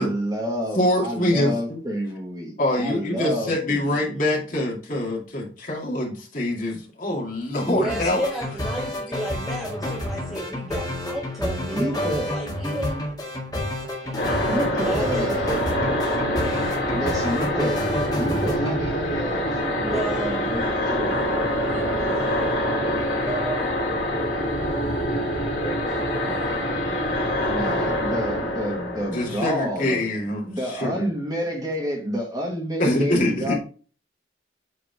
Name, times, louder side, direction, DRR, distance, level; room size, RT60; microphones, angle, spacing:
voice 1, 0.0-4.2 11.7-12.4 14.5-15.5 16.9-21.4 27.4-30.0 30.5-33.5, equal, 20° right, 0 dB, 1.7 m, -29 dB
voice 2, 0.7-1.8 2.6-8.2 29.1-31.0 32.8-33.5, left 1 dB, 45° left, -2 dB, 2.3 m, -25 dB
sound 1, 7.5-18.8, left 1 dB, 20° left, 1.9 m, -29 dB
voice 3, 7.7-13.0 14.0-15.7 16.5-17.1 19.8-23.8 24.6-27.3, right 1 dB, ahead, 0 dB, 0.7 m, -33 dB
sound 2, 14.2-30.1, equal, 65° left, 3.1 m, -25 dB
8.2 x 3.7 x 3.4 m, 0.39 s
head